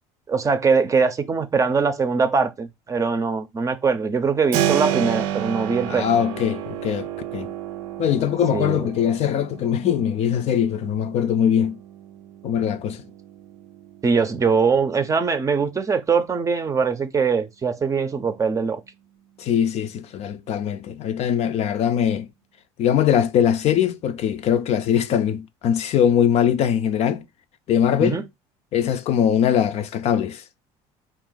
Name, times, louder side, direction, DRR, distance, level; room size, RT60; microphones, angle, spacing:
voice 1, 0.3-6.1 8.5-8.9 14.0-18.8 28.0-28.2, right 5 dB, 25° right, 0.6 m, -22 dB
Keyboard (musical), 4.5-15.2, right 11 dB, 80° right, 0.5 m, -31 dB
voice 2, 5.9-7.5 8.0-11.8 12.4-13.0 19.4-22.3 22.8-27.2 27.7-28.2 28.7-30.4, left 9 dB, 55° left, 0.5 m, -21 dB
4.1 x 2.5 x 3.8 m
supercardioid pair, 100°, 13 cm